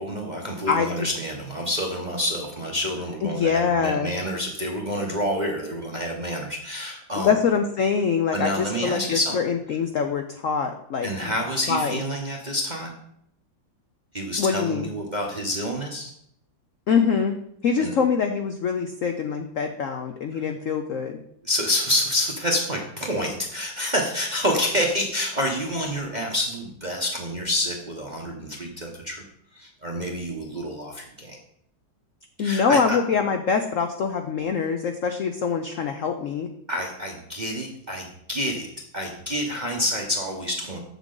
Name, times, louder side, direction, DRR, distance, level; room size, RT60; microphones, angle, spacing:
voice 1, 0.0-7.3 8.3-9.4 11.0-13.0 14.1-16.1 17.8-17.9 21.4-29.2 29.5-31.4 32.4-33.0 36.7-38.7 38.9-40.8, equal, 40° right, 0 dB, 0.6 m, -28 dB
voice 2, 0.7-1.1 3.2-4.1 7.2-11.1 11.7-12.0 14.4-14.9 16.9-17.4 17.6-21.2 32.4-36.5, left 6 dB, 90° left, 6 dB, 0.7 m, -24 dB
7.4 x 7.1 x 3.8 m, 0.70 s
omnidirectional pair, 2.1 m